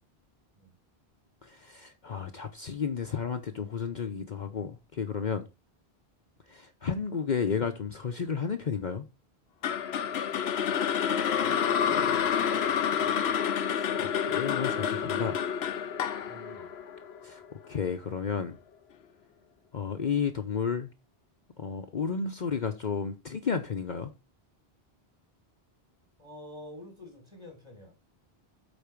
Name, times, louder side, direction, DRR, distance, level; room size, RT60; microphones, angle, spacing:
voice 1, 1.4-5.5 6.5-9.1 13.7-15.4 17.2-17.4 17.7-18.6 19.7-20.9 21.6-24.1, left 6 dB, 50° left, 0.9 m, -32 dB
sound 1, 9.6-17.8, left 8 dB, 80° left, 1.0 m, -29 dB
voice 2, 11.0-13.4 16.2-16.7 26.2-27.9, left 3 dB, 25° right, 4.4 m, -46 dB
8.5 x 4.4 x 5.9 m
omnidirectional pair, 1.0 m